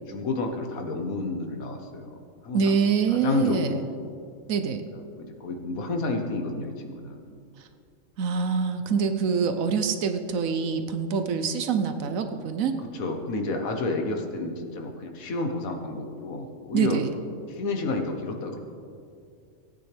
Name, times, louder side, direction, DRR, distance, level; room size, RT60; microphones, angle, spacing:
voice 1, 0.1-2.8 3.1-3.8 4.9-7.4 12.9-17.0 17.5-18.6, left 3 dB, 80° left, 3 dB, 1.6 m, -30 dB
voice 2, 2.5-3.8 4.5-4.8 8.2-12.8 16.7-17.1, right 6 dB, 75° right, 8 dB, 1.1 m, -25 dB
18.0 x 9.2 x 3.4 m, 2.4 s
omnidirectional pair, 1.5 m